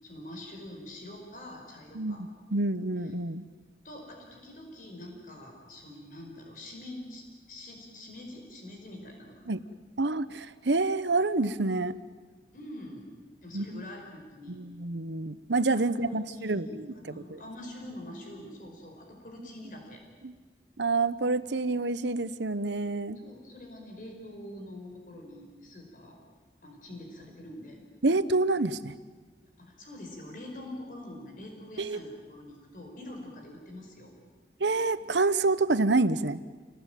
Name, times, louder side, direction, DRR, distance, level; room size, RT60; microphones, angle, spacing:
voice 1, 0.0-2.2 3.8-7.2 7.5-9.4 12.5-13.1 13.4-14.6 15.7-20.0 23.1-26.2 26.6-27.8 29.6-34.1, left 1 dB, 50° left, 2 dB, 5.1 m, -45 dB
voice 2, 1.9-3.4 9.5-9.6 10.0-12.0 13.5-13.8 14.5-16.8 17.2-17.4 20.2-20.3 20.8-23.2 28.0-29.0 31.8-32.0 34.6-36.4, right 3 dB, 90° right, 14 dB, 1.1 m, -28 dB
29.0 x 19.0 x 9.2 m, 1.4 s
head